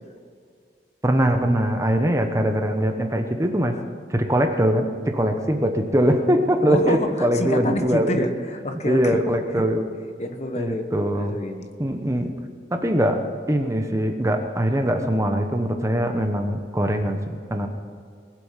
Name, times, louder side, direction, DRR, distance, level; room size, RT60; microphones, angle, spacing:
voice 1, 1.0-3.8 4.1-8.3 8.8-9.8 10.6-11.4 11.8-12.3 12.7-13.2 13.5-17.7, equal, 15° right, 5 dB, 1.1 m, -22 dB
voice 2, 6.7-9.2 10.2-11.7 12.8-12.9, left 1 dB, 40° left, 6 dB, 1.1 m, -28 dB
20.5 x 8.1 x 5.8 m, 2.2 s
head